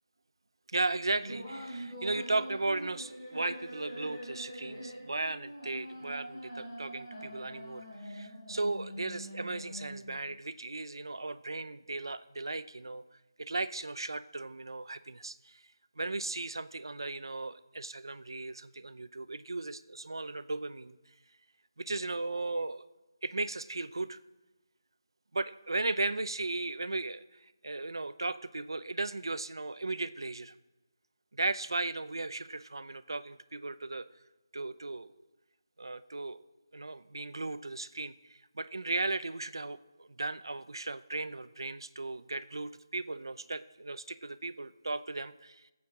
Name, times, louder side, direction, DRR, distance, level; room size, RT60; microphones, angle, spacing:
voice 1, 0.7-13.0 13.4-15.6 16.0-21.0 21.8-22.9 23.2-24.2 25.3-27.2 27.6-30.5 31.4-34.1 34.5-35.1 35.8-36.4 36.7-45.6, right 2 dB, 80° right, 14 dB, 0.6 m, -36 dB
sound 1, 1.2-10.2, equal, 5° left, 4.4 m, -44 dB
18.5 x 8.6 x 4.8 m, 1.1 s
figure-of-eight pair, 180°, 2 cm